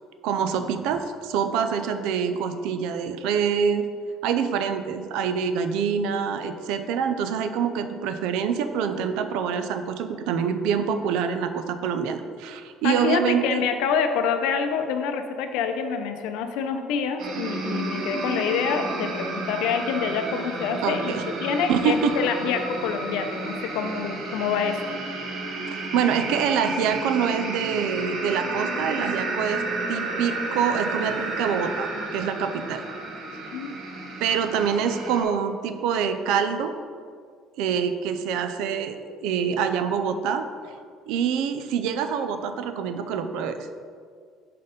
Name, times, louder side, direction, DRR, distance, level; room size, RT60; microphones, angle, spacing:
voice 1, 0.2-3.9 4.2-13.6 20.8-21.2 21.7-22.1 25.9-29.6 29.9-32.8 34.2-36.7 37.6-39.0 39.2-40.5 41.1-43.7, right 7 dB, 75° right, 8 dB, 0.4 m, -25 dB
voice 2, 12.8-21.1 21.4-24.9 33.5-33.7, left 6 dB, 75° left, 7 dB, 0.5 m, -26 dB
sound 1, 17.2-35.2, right 2 dB, 45° right, 0.8 m, -31 dB
5.4 x 4.2 x 5.1 m, 2.1 s
cardioid pair, 180°, 0 cm